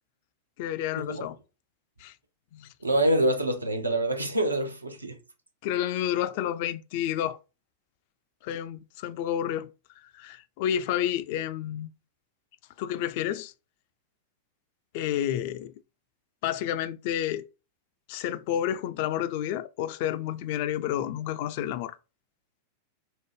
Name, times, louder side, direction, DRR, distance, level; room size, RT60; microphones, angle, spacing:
voice 1, 0.6-1.4 2.0-2.1 2.5-2.7 5.6-7.4 8.4-9.7 10.1-11.9 12.8-13.5 14.9-15.7 16.4-17.4 18.1-22.0, left 11 dB, 50° left, 0.3 m, -30 dB
voice 2, 2.8-5.2, right 1 dB, 80° right, 0.6 m, -26 dB
4.9 x 2.0 x 3.2 m
figure-of-eight pair, 90°, 0 cm